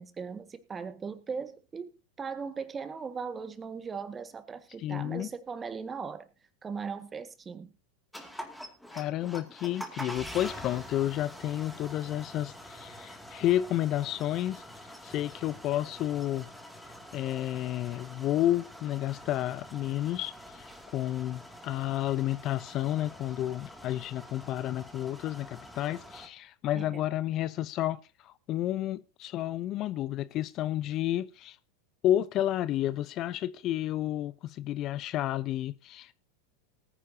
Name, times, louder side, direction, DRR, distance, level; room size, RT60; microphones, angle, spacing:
voice 1, 0.0-6.3 6.6-7.7 26.7-27.0, right 5 dB, 20° right, 1.6 m, -38 dB
voice 2, 4.8-5.3 8.9-16.5 17.1-31.6 32.0-36.1, left 13 dB, 45° left, 0.6 m, -31 dB
sound 1, 8.1-26.3, equal, ahead, 2.3 m, -46 dB
19.5 x 9.9 x 2.8 m
hypercardioid pair, 90°, 0 cm